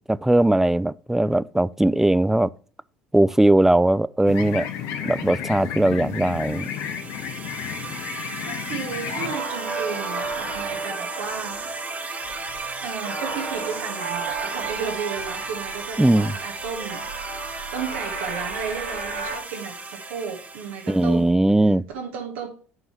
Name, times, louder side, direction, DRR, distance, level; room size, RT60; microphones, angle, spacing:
voice 1, 0.1-2.5 3.1-4.7 5.0-6.7 16.0-16.3 20.9-21.8, right 1 dB, 5° right, 0.4 m, -19 dB
sound 1, 4.2-9.3, left 9 dB, 55° left, 1.2 m, -32 dB
sound 2, 5.0-19.4, right 4 dB, 80° right, 2.1 m, -35 dB
sound 3, 6.1-21.2, right 3 dB, 25° right, 1.6 m, -35 dB
voice 2, 8.4-11.7 12.8-17.3 17.7-21.4 21.9-22.5, right 6 dB, 65° right, 1.4 m, -33 dB
9.6 x 5.4 x 3.0 m
figure-of-eight pair, 65°, 7 cm